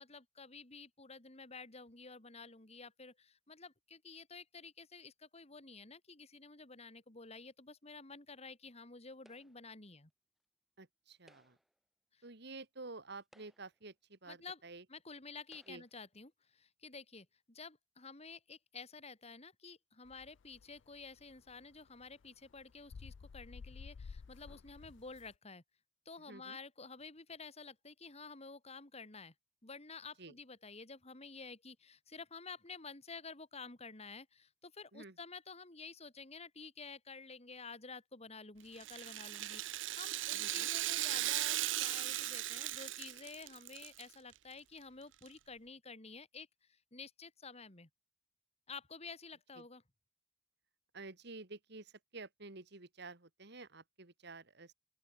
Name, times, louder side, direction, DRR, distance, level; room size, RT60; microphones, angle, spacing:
voice 1, 0.0-10.1 12.1-12.2 14.3-14.6 14.9-25.6 26.0-29.3 29.6-47.9 48.7-49.8, left 4 dB, 35° left, 2.8 m, -51 dB
sound 1, 9.2-9.8 11.1-11.8 12.6-12.7 13.2-13.9 14.8-14.9 15.4-16.0, equal, ahead, 6.4 m, -68 dB
voice 2, 10.8-11.6 12.2-14.8 15.7-15.8 26.3-26.6 30.2-30.3 34.9-35.2 40.3-40.7 49.6-49.7 50.9-54.7, right 3 dB, 60° right, 2.3 m, -51 dB
sound 2, 20.1-25.3, left 5 dB, 70° left, 0.4 m, -53 dB
Rattle (instrument), 38.8-44.0 44.3-44.4 45.3-45.4, right 15 dB, 80° right, 0.7 m, -37 dB
open air
head